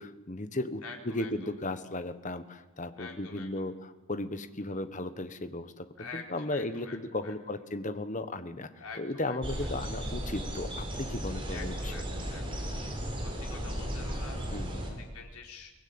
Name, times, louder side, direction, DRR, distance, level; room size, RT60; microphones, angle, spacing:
voice 1, 0.0-5.9 6.1-8.7 9.0-11.7 14.5-14.8, left 2 dB, 35° left, 11 dB, 1.3 m, -35 dB
voice 2, 0.8-1.5 3.0-3.7 6.0-7.3 8.8-9.7 11.5-12.7 13.0-13.1 13.4-14.6 15.0-15.7, left 4 dB, 85° left, 2 dB, 4.1 m, -47 dB
sound 1, 9.4-14.9, equal, 25° right, 4.9 m, -35 dB
23.5 x 20.0 x 8.8 m, 1.2 s
head